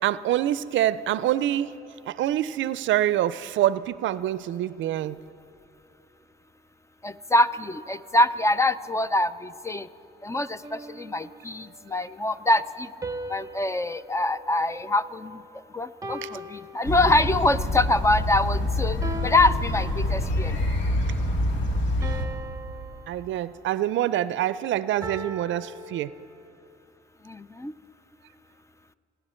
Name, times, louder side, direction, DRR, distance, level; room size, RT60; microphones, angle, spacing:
voice 1, 0.0-1.8 2.1-5.2 16.2-16.3 22.0-22.1 23.1-26.1, right 12 dB, 75° right, 16 dB, 0.5 m, -26 dB
voice 2, 7.0-9.9 10.2-10.6 11.0-12.9 13.3-15.4 15.7-19.0 19.2-20.6 27.3-27.7, left 2 dB, 15° left, 14 dB, 0.4 m, -24 dB
sound 1, 10.6-11.8 13.0-15.5 16.0-17.5 19.0-20.5 22.0-23.9 25.0-26.7, right 1 dB, 15° right, 0.8 m, -40 dB
sound 2, 16.8-22.3, left 1 dB, 70° left, 2.1 m, -26 dB
29.5 x 10.5 x 4.4 m, 2.7 s
cardioid pair, 90°, 20 cm